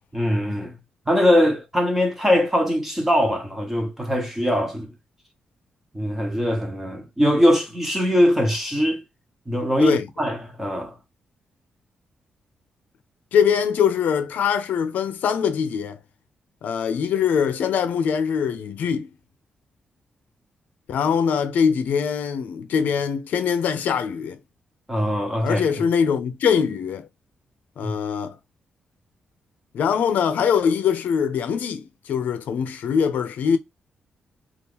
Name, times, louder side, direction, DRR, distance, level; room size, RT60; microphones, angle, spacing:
voice 1, 0.1-0.8 1.1-4.9 5.9-9.0 9.5-11.0 24.9-25.8 27.8-27.9, equal, 10° right, 0.9 m, -21 dB
voice 2, 13.3-16.0 16.6-19.1 20.9-24.4 25.4-27.1 27.8-28.4 29.7-33.6, left 7 dB, 80° left, 0.5 m, -22 dB
2.9 x 2.4 x 3.4 m
cardioid pair, 120°, 3 cm